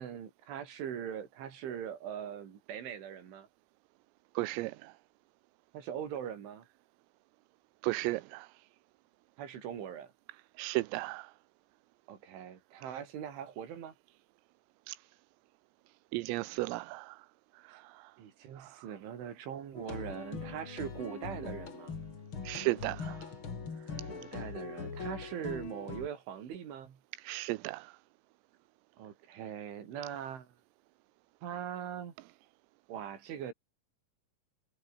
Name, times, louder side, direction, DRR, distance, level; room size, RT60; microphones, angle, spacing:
voice 1, 0.0-3.5 5.7-6.7 9.4-10.1 12.1-13.9 17.7-17.8 18.2-22.0 24.1-27.0 29.0-30.5 31.4-32.1 32.9-33.5, right 9 dB, 65° right, 5.7 m, -41 dB
voice 2, 4.4-4.9 7.8-8.5 10.6-11.3 14.9-15.0 16.1-17.2 17.7-18.0 18.6-18.7 22.5-23.2 27.2-27.9, right 20 dB, 85° right, 3.5 m, -35 dB
sound 1, 19.7-26.1, left 5 dB, 30° left, 2.9 m, -42 dB
omnidirectional pair, 6.0 m